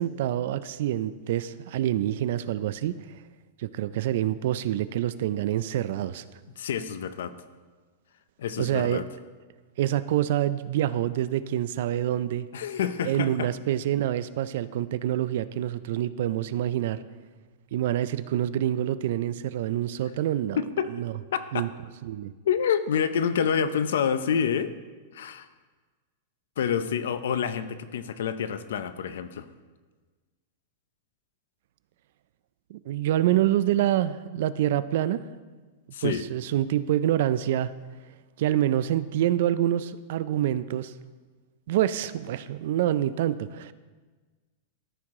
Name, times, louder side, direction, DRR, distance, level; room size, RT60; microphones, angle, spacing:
voice 1, 0.0-2.9 3.6-6.2 8.6-9.0 9.8-12.5 13.0-17.0 17.7-20.6 20.9-21.1 21.5-21.7 22.0-22.3 32.7-35.2 36.0-37.7 38.4-40.9 41.7-43.7, right 12 dB, 55° right, 15 dB, 0.3 m, -26 dB
voice 2, 6.6-7.3 8.4-9.1 12.5-13.5 20.6-20.9 21.3-21.7 22.4-24.7 25.1-25.5 26.6-29.5 35.9-36.2, left 7 dB, 80° left, 13 dB, 0.5 m, -27 dB
13.5 x 4.8 x 3.6 m, 1.4 s
supercardioid pair, 170°, 0 cm